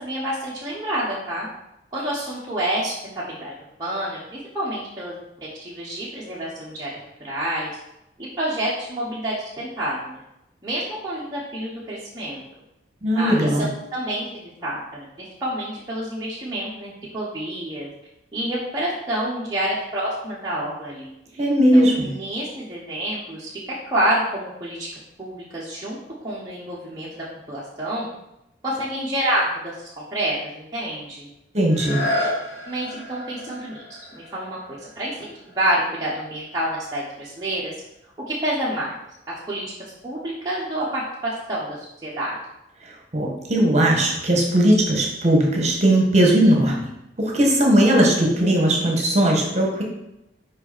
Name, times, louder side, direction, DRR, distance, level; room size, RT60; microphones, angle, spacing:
voice 1, 0.0-1.5 1.9-3.5 3.8-7.7 8.2-10.2 10.6-12.4 13.1-15.1 15.4-17.9 18.3-21.1 21.3-21.4 21.7-24.9 25.2-28.1 28.6-31.3 32.7-33.8 34.1-37.7 38.3-39.0 39.5-39.6 40.0-42.4, right 1 dB, 20° right, -8 dB, 1.0 m, -28 dB
voice 2, 13.0-13.7 21.4-22.1 31.5-32.0 43.1-46.9 47.2-49.8, right 1 dB, 35° right, 0 dB, 1.4 m, -18 dB
sound 1, 31.7-37.3 37.9-38.0, left 1 dB, 60° left, 1.3 m, -32 dB
5.6 x 5.1 x 4.2 m, 0.87 s
head